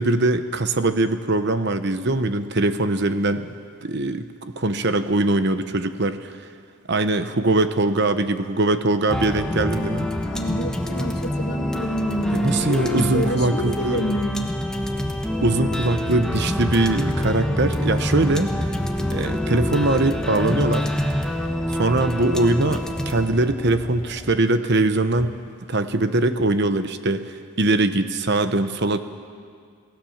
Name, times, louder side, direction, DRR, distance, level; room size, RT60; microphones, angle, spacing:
voice 1, 0.0-3.5 3.8-6.3 6.9-10.1 12.3-14.1 15.4-18.7 19.1-20.9 21.7-25.3 25.7-29.0, right 2 dB, 50° right, 10 dB, 0.9 m, -22 dB
sound 1, 9.1-24.4, left 1 dB, 5° left, 1.1 m, -26 dB
voice 2, 10.3-14.5, equal, 45° left, 5 dB, 1.5 m, -27 dB
27.5 x 17.0 x 7.3 m, 2.1 s
head